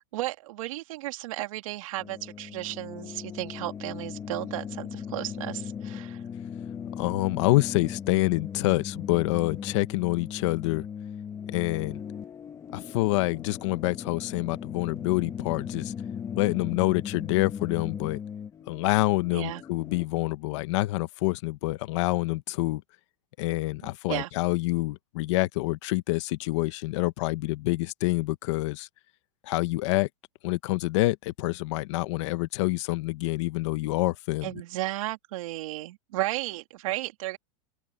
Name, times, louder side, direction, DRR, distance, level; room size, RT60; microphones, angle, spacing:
voice 1, 0.1-6.2 19.3-19.6 23.8-24.3 34.4-37.4, right 17 dB, 65° right, 3.2 m, -34 dB
sound 1, 2.0-20.1, left 7 dB, 15° left, 1.8 m, -38 dB
voice 2, 7.0-10.9 11.5-12.0 12.7-15.9 16.3-18.2 18.7-22.8 23.4-28.9 29.4-30.1 30.4-34.5, left 20 dB, 55° left, 1.1 m, -27 dB
open air
supercardioid pair, 160°, 18 cm